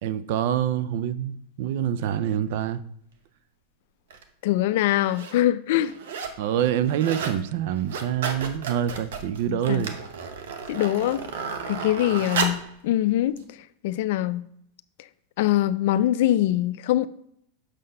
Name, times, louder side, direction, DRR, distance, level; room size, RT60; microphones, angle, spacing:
voice 1, 0.0-2.8 6.4-9.9, right 10 dB, 65° right, 0.4 m, -26 dB
sound 1, 4.1-4.2 4.9-5.4 5.7-6.4 6.7-7.4 7.7-12.7 13.4-13.5, right 5 dB, 80° right, 0.9 m, -33 dB
voice 2, 4.4-5.9 9.5-9.8 10.7-11.3 11.7-12.6 12.8-13.4 13.8-14.4 15.4-17.1, left 13 dB, 65° left, 0.4 m, -23 dB
6.5 x 4.0 x 5.4 m
supercardioid pair, 135°, 0 cm